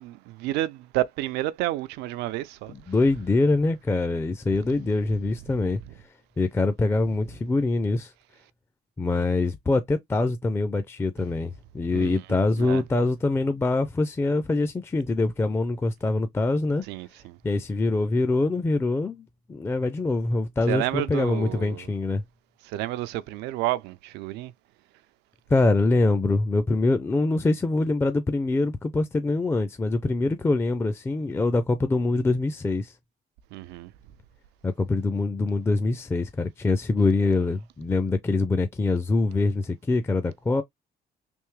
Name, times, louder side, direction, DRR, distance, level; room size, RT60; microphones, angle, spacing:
voice 1, 0.0-2.7 11.9-12.2 12.6-12.8 16.9-17.4 20.7-21.8 22.7-24.5 33.5-33.9, right 16 dB, 90° right, 0.5 m, -30 dB
voice 2, 2.7-5.8 6.4-8.1 9.0-16.8 17.4-22.2 25.5-32.9 34.6-40.6, left 2 dB, 15° left, 0.4 m, -24 dB
3.5 x 2.7 x 3.1 m
cardioid pair, 110°, 17 cm